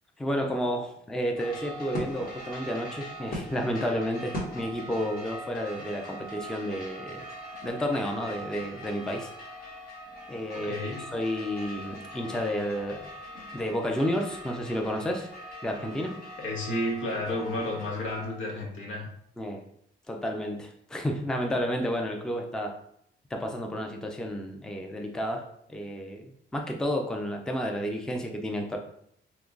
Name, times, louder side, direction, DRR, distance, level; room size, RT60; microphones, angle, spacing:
voice 1, 0.2-7.3 7.6-9.3 10.3-10.7 11.1-13.1 13.5-15.3 15.6-16.1 19.4-19.6 20.1-22.7 23.3-28.8, equal, 5° left, 3 dB, 0.4 m, -31 dB
sound 1, 1.4-18.3, equal, 50° left, 1.2 m, -41 dB
voice 2, 10.5-11.1 16.4-19.1, left 1 dB, 75° left, -2 dB, 1.1 m, -32 dB
2.9 x 2.2 x 3.8 m, 0.70 s
cardioid pair, 90°, 20 cm